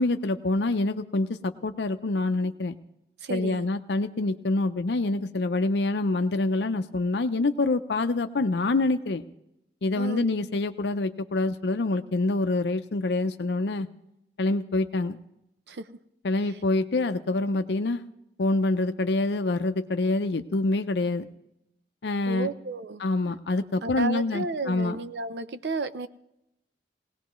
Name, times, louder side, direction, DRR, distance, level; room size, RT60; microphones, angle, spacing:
voice 1, 0.0-2.8 3.3-9.2 9.8-13.9 14.4-15.2 16.2-18.0 18.4-21.2 22.0-22.5 23.0-25.0, left 2 dB, 75° left, 9 dB, 0.6 m, -26 dB
voice 2, 3.2-3.7 9.9-10.3 15.7-15.9 16.5-16.6 22.2-23.0 23.8-26.1, right 3 dB, 70° right, 12 dB, 0.6 m, -32 dB
19.5 x 17.5 x 3.1 m, 0.85 s
head